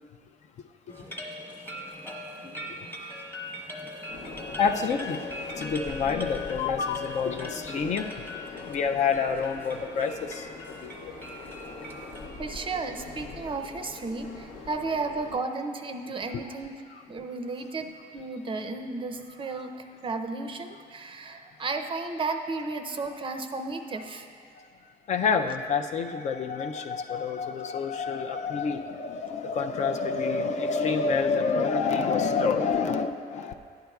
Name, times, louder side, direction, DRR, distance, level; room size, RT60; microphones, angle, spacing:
sound 1, 0.9-12.3, left 2 dB, 10° left, 0.9 m, -40 dB
voice 1, 1.1-1.5 3.9-4.3 12.4-16.8 17.1-24.3, right 3 dB, 30° right, 7 dB, 0.5 m, -34 dB
sound 2, 4.1-15.4, left 3 dB, 80° left, 0.9 m, -43 dB
voice 2, 4.6-5.2 5.5-8.1 8.6-11.1 25.1-33.5, left 5 dB, 45° left, 5 dB, 0.4 m, -28 dB
11.5 x 8.9 x 2.3 m, 2.3 s
cardioid pair, 110°, 17 cm